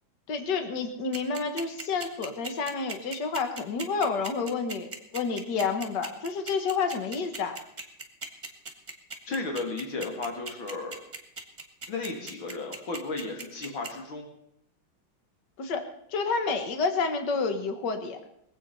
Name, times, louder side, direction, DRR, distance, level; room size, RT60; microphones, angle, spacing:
voice 1, 0.3-7.6 15.6-15.8 16.1-18.2, left 4 dB, 60° left, 7 dB, 2.0 m, -29 dB
sound 1, 1.1-13.9, right 3 dB, 25° right, 1.7 m, -38 dB
voice 2, 9.3-10.9 11.9-14.3, left 3 dB, 85° left, 3 dB, 3.1 m, -34 dB
22.0 x 8.4 x 5.5 m, 0.75 s
omnidirectional pair, 2.1 m